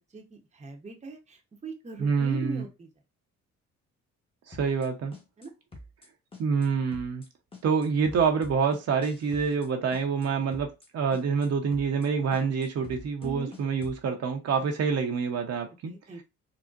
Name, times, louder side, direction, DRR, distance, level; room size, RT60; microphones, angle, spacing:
voice 1, 0.1-2.9 5.4-5.5 13.2-13.5 15.8-16.2, right 2 dB, 25° right, 0.8 m, -40 dB
voice 2, 2.0-2.6 4.5-5.1 6.4-7.2 7.6-10.7 10.9-15.9, right 5 dB, 55° right, 0.8 m, -27 dB
sound 1, 4.5-4.9 5.1-5.5 5.7-6.1 6.3-6.7 6.9-7.3 7.5-9.7 9.9-10.3 10.5-10.9 11.1-11.5 11.7-12.1 12.3-14.0, left 1 dB, 20° left, 0.9 m, -46 dB
3.9 x 2.1 x 2.4 m
cardioid pair, 90°, 30 cm